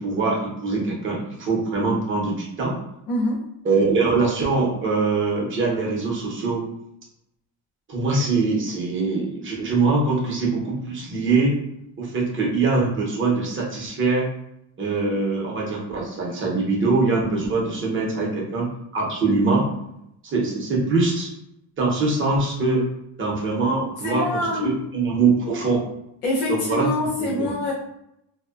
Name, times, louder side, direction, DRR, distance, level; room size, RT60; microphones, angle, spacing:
voice 1, 0.0-2.7 3.6-6.6 7.9-11.5 12.0-14.3 14.8-19.6 20.2-21.3 21.8-22.8 23.2-25.8 26.5-26.9 27.2-27.5, right 3 dB, 25° right, -4 dB, 0.6 m, -23 dB
voice 2, 3.1-3.5 18.2-18.3 24.0-24.8 26.2-27.7, left 1 dB, 90° left, -6 dB, 0.8 m, -25 dB
2.7 x 2.0 x 2.3 m, 0.81 s
cardioid pair, 160°, 49 cm